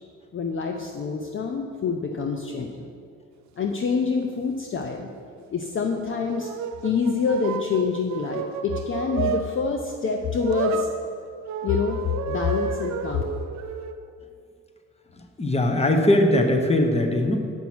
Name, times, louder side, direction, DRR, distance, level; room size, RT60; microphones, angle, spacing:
voice 1, 0.3-2.9 3.6-5.1 5.5-6.5 6.8-10.9 11.6-13.2, left 5 dB, 40° left, 3 dB, 0.6 m, -26 dB
sound 1, 5.9-9.5 10.4-10.9 11.5-13.9, right 7 dB, 65° right, 0.6 m, -31 dB
voice 2, 15.4-17.4, left 1 dB, 20° left, 4 dB, 1.0 m, -20 dB
7.2 x 5.9 x 6.0 m, 2.3 s
cardioid pair, 90°, 30 cm